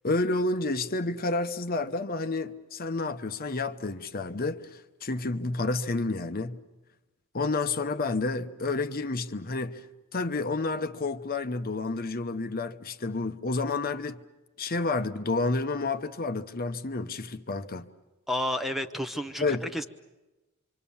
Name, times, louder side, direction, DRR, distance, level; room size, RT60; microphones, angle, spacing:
voice 1, 0.0-6.6 7.3-9.8 10.1-14.2 14.6-17.9 19.4-19.7, left 3 dB, 40° left, 0.9 m, -30 dB
voice 2, 18.3-19.8, left 1 dB, ahead, 0.8 m, -31 dB
26.5 x 25.5 x 7.1 m
head